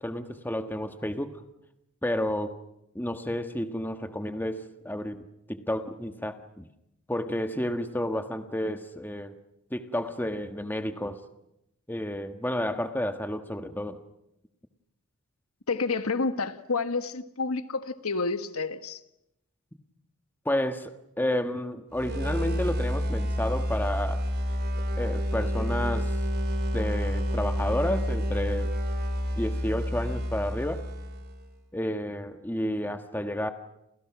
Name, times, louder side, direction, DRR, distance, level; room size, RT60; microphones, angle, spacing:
voice 1, 0.0-1.4 2.0-2.6 2.9-6.7 7.1-9.3 9.7-11.2 11.9-14.0 20.4-24.2 25.0-26.1 26.7-28.7 29.3-30.8 31.7-33.5, left 1 dB, 10° left, 7 dB, 1.5 m, -31 dB
voice 2, 15.7-19.0, left 4 dB, 75° left, 10 dB, 1.5 m, -29 dB
sound 1, 21.9-31.4, equal, 45° right, 4.8 m, -29 dB
29.5 x 29.0 x 6.1 m, 0.83 s
head